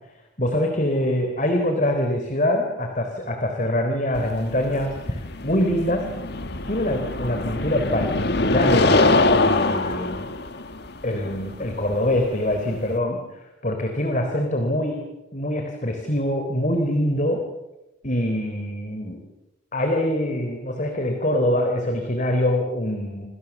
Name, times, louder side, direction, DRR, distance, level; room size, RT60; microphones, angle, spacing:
voice 1, 0.4-6.1 6.7-10.3 11.0-13.2 13.6-15.1 15.3-17.5 18.0-19.2 19.7-23.3, left 1 dB, 40° left, 4 dB, 3.5 m, -24 dB
sound 1, 4.1-13.0, left 2 dB, 55° left, 1.7 m, -23 dB
29.0 x 26.5 x 7.2 m, 0.97 s
head